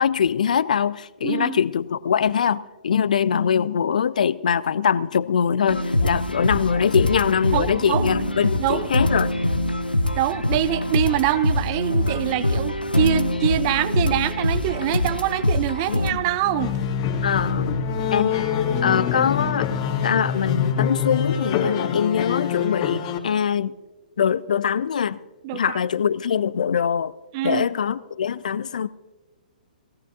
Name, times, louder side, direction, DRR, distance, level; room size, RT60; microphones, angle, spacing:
voice 1, 0.0-9.3 15.1-15.2 15.9-16.4 17.2-17.8 18.1-18.5 18.8-19.7 20.0-23.7 24.2-25.2 25.5-27.1 27.4-28.9, left 7 dB, 55° left, 0.4 m, -23 dB
voice 2, 1.2-1.6 7.5-8.1 8.6-8.9 10.2-16.7 25.4-25.8 27.3-27.7, right 13 dB, 30° right, 0.5 m, -24 dB
sound 1, 5.7-16.1, left 1 dB, 85° left, 1.0 m, -24 dB
sound 2, 16.4-23.2, left 7 dB, 30° left, 1.8 m, -25 dB
19.5 x 17.0 x 2.7 m
figure-of-eight pair, 120°, 5 cm